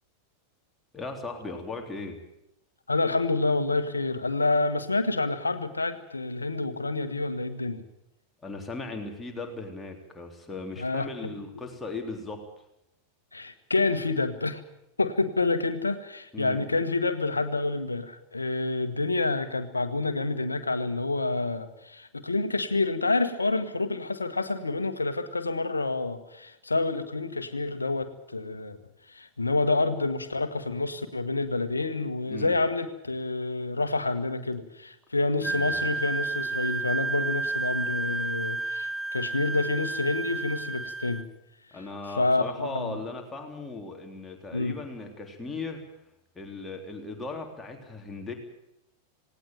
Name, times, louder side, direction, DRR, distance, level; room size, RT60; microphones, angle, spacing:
voice 1, 0.9-2.2 8.4-12.4 16.3-16.7 32.3-32.5 35.4-35.9 41.7-45.8 46.4-48.3, left 3 dB, 10° left, 2 dB, 3.6 m, -37 dB
voice 2, 2.9-7.8 10.8-11.3 13.3-14.6 15.0-28.8 29.1-41.2 42.2-43.0 44.5-44.8, left 3 dB, 80° left, 11 dB, 1.5 m, -28 dB
Wind instrument woodwind instrument, 35.4-41.2, right 3 dB, 5° right, 0.9 m, -31 dB
18.5 x 18.0 x 9.2 m, 0.83 s
figure-of-eight pair, 90°, 0 cm